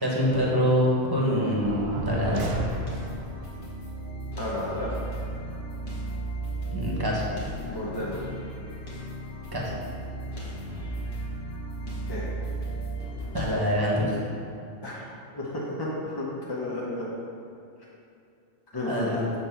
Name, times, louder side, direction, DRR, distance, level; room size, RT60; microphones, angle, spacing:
voice 1, 0.0-2.5 6.7-7.2 9.5-9.6 13.3-14.2 18.9-19.3, equal, 20° right, -5 dB, 1.1 m, -25 dB
sound 1, 1.6-3.3, right 3 dB, 55° right, 0.7 m, -32 dB
sound 2, 2.3-13.6, right 2 dB, 45° left, 1.2 m, -35 dB
voice 2, 4.4-5.0 7.6-8.2 12.0-12.3 14.8-15.0 15.3-17.1 18.7-19.2, left 1 dB, 25° left, -7 dB, 0.7 m, -32 dB
7.0 x 3.0 x 5.5 m, 2.6 s
omnidirectional pair, 1.3 m